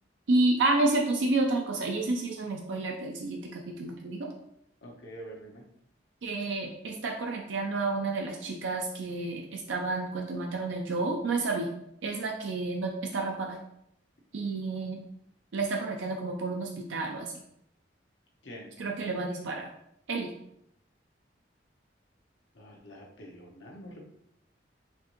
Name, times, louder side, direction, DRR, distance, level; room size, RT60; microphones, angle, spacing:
voice 1, 0.3-4.3 6.2-11.7 12.0-13.6 14.3-15.0 15.5-17.3 18.8-19.7 20.1-20.3, right 2 dB, 80° right, 1 dB, 0.5 m, -30 dB
voice 2, 4.8-5.6 18.4-18.7 22.5-24.1, equal, 85° left, -1 dB, 0.9 m, -46 dB
4.4 x 2.6 x 2.9 m, 0.76 s
head